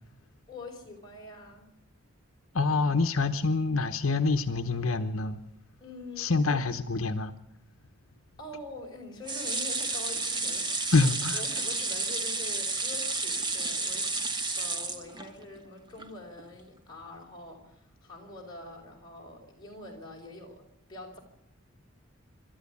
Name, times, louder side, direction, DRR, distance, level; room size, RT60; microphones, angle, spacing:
voice 1, 0.5-1.7 5.8-6.6 8.4-10.9 11.3-14.3 14.5-20.6 20.9-21.2, left 2 dB, 20° left, 4.7 m, -45 dB
voice 2, 2.5-5.4 6.2-7.3 10.9-11.4, left 3 dB, 75° left, 1.0 m, -26 dB
sound 1, 9.3-15.6 16.0-16.1 16.4-16.5, right 3 dB, 20° right, 1.4 m, -31 dB
27.0 x 12.5 x 8.4 m
head